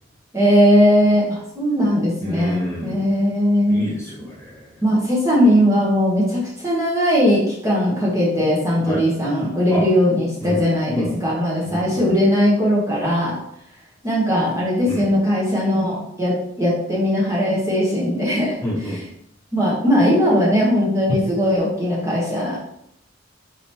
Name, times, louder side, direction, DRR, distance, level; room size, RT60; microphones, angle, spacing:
voice 1, 0.3-3.9 4.8-13.3 14.0-18.5 19.5-22.6, equal, 15° right, -7 dB, 1.1 m, -19 dB
voice 2, 2.2-3.1 3.7-4.7 8.9-9.0 9.7-9.8 10.4-10.6 10.9-11.1 11.6-12.1 14.9-15.0 18.6-19.0, equal, 15° left, -6 dB, 1.3 m, -28 dB
4.5 x 3.9 x 2.9 m, 0.74 s
head